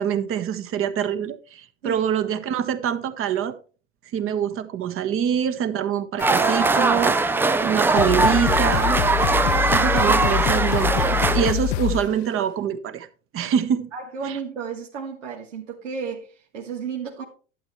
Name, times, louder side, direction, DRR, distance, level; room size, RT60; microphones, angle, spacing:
voice 1, 0.0-3.5 4.1-9.0 9.7-13.1 13.3-13.9 14.3-14.4, right 8 dB, 35° right, 1.3 m, -25 dB
sound 1, 6.2-6.8 7.6-7.7 8.0-12.2, left 14 dB, 55° left, 0.6 m, -25 dB
sound 2, 6.2-11.5, right 3 dB, 5° right, 0.4 m, -21 dB
voice 2, 13.9-17.2, right 6 dB, 80° right, 2.5 m, -33 dB
12.0 x 9.2 x 3.2 m
hypercardioid pair, 100°, 37 cm